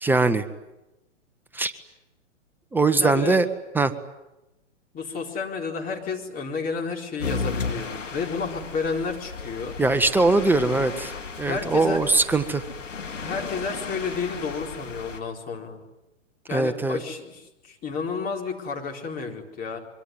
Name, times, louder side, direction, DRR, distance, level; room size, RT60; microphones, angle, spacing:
voice 1, 0.0-0.4 1.5-1.7 2.7-3.4 3.7-3.9 9.8-12.6 16.5-17.0, right 3 dB, 5° right, 8 dB, 1.1 m, -21 dB
voice 2, 3.0-3.4 4.9-9.8 11.4-12.1 13.2-15.8 16.5-19.8, left 5 dB, 25° left, 2 dB, 4.3 m, -31 dB
sound 1, 7.2-15.2, left 5 dB, 85° left, 3.5 m, -34 dB
24.5 x 24.0 x 9.6 m, 0.96 s
hypercardioid pair, 120°, 37 cm